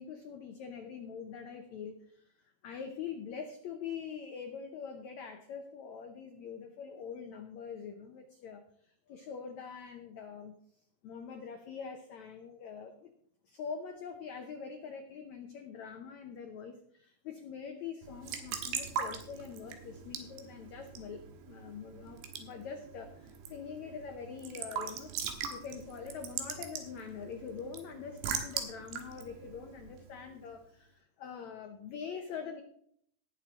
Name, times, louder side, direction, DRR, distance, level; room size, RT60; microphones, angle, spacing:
voice 1, 0.0-10.5 11.0-13.1 13.4-25.1 25.5-32.6, left 6 dB, 85° left, 5 dB, 1.6 m, -44 dB
Raindrop / Drip / Trickle dribble, 18.0-30.5, right 7 dB, 85° right, 3.4 m, -41 dB
18.5 x 7.5 x 3.7 m, 0.66 s
omnidirectional pair, 4.6 m